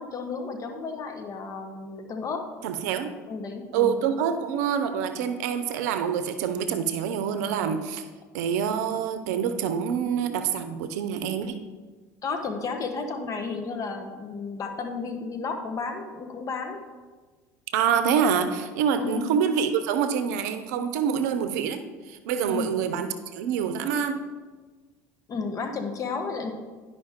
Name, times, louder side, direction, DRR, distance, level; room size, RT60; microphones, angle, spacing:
voice 1, 0.0-2.5 3.3-4.0 12.2-16.8 19.0-19.3 22.5-22.8 25.3-26.5, left 4 dB, 40° left, 5 dB, 1.2 m, -33 dB
voice 2, 2.6-3.1 3.7-8.0 8.3-11.6 17.7-21.8 22.1-24.2, right 7 dB, 75° right, 10 dB, 0.6 m, -26 dB
10.5 x 5.1 x 3.6 m, 1.4 s
hypercardioid pair, 80°, 9 cm